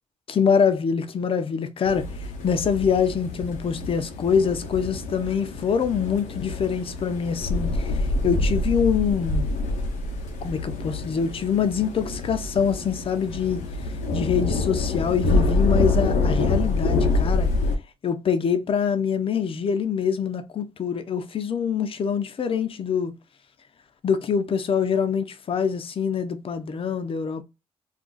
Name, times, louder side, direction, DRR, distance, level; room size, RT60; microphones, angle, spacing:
voice 1, 0.3-2.1 2.4-9.5 10.4-13.6 14.1-17.5 18.0-23.1 24.0-27.4, left 7 dB, 50° left, 0.6 m, -24 dB
sound 1, 1.9-17.8, left 2 dB, 90° left, 0.7 m, -26 dB
2.5 x 2.4 x 3.8 m
cardioid pair, 60°, 12 cm